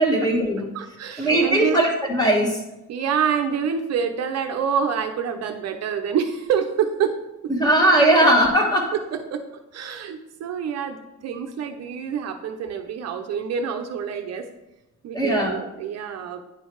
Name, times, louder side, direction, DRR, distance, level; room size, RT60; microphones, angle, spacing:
voice 1, 0.0-0.7 1.2-2.6 7.5-8.9 15.1-15.6, right 1 dB, 10° left, 1 dB, 1.2 m, -19 dB
voice 2, 0.7-1.9 2.9-7.2 8.2-8.3 8.9-9.5 9.7-14.5 15.0-16.4, right 7 dB, 50° right, 6 dB, 0.7 m, -27 dB
9.6 x 4.5 x 4.6 m, 0.95 s
cardioid pair, 165°, 33 cm